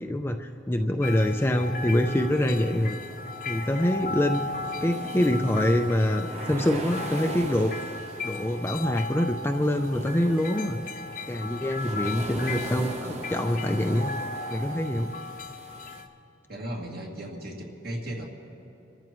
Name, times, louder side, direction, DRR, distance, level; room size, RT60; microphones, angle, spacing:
voice 1, 0.0-3.0 3.5-4.4 4.8-7.7 8.2-10.8 11.3-14.1 14.5-15.1, left 1 dB, 10° left, 4 dB, 0.4 m, -25 dB
sound 1, 1.0-16.1, left 3 dB, 45° left, 0.8 m, -37 dB
sound 2, 2.4-16.0, right 1 dB, 35° right, 0.9 m, -40 dB
voice 2, 16.5-18.3, right 1 dB, 50° right, -2 dB, 2.3 m, -36 dB
28.0 x 14.0 x 3.1 m, 2.9 s
head